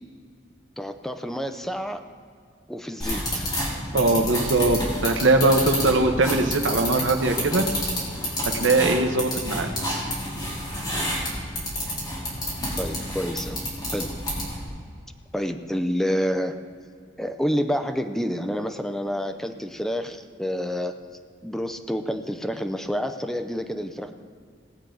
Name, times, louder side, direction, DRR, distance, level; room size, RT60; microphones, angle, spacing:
voice 1, 0.8-2.0 2.7-3.5 12.8-13.7 13.9-14.1 15.3-16.6 17.2-21.0 21.4-24.1, equal, ahead, 7 dB, 0.6 m, -28 dB
sound 1, 3.0-14.7, equal, 20° left, 3.6 m, -29 dB
voice 2, 3.9-7.7 8.4-9.7, right 2 dB, 80° right, 5 dB, 1.2 m, -21 dB
19.5 x 8.3 x 3.9 m, 2.3 s
head